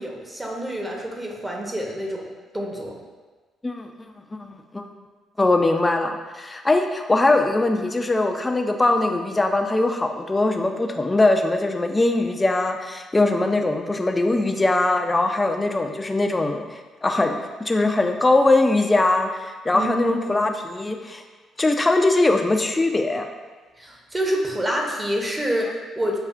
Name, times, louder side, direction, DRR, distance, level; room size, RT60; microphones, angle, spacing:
voice 1, 0.0-2.2 2.5-3.0 19.7-20.5 23.8-26.2, equal, 20° right, 0 dB, 0.9 m, -27 dB
voice 2, 4.4-4.9 5.4-21.2 21.6-23.3, left 2 dB, 20° left, 5 dB, 0.5 m, -21 dB
6.8 x 2.3 x 2.4 m, 1.3 s
hypercardioid pair, 50°, 0 cm